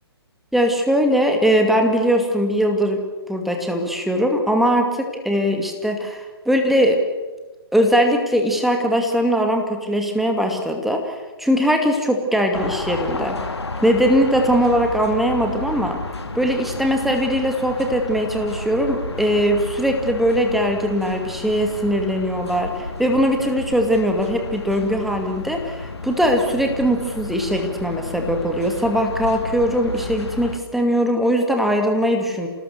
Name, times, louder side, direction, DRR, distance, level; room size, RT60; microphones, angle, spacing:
voice 1, 0.5-3.0 3.3-7.0 7.7-13.4 13.8-16.0 16.3-32.5, equal, ahead, 3 dB, 2.3 m, -20 dB
sound 1, 12.5-30.6, left 3 dB, 80° left, 2.1 m, -32 dB
27.5 x 19.5 x 7.0 m, 1.2 s
figure-of-eight pair, 130°, 14 cm